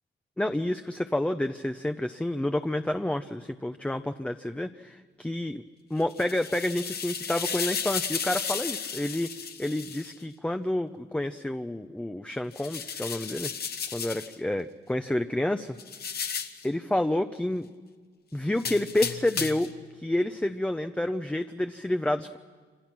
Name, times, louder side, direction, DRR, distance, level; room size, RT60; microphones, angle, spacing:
voice 1, 0.4-5.6 5.9-9.3 9.6-13.5 13.9-15.8 16.6-17.7 18.3-19.7 20.0-22.4, left 1 dB, 5° left, 7 dB, 0.7 m, -29 dB
sound 1, 6.0-10.1 12.5-14.4 15.8-16.7 18.6-19.8, left 6 dB, 50° left, 1.4 m, -34 dB
26.5 x 25.5 x 6.1 m, 1.5 s
cardioid pair, 90°, 20 cm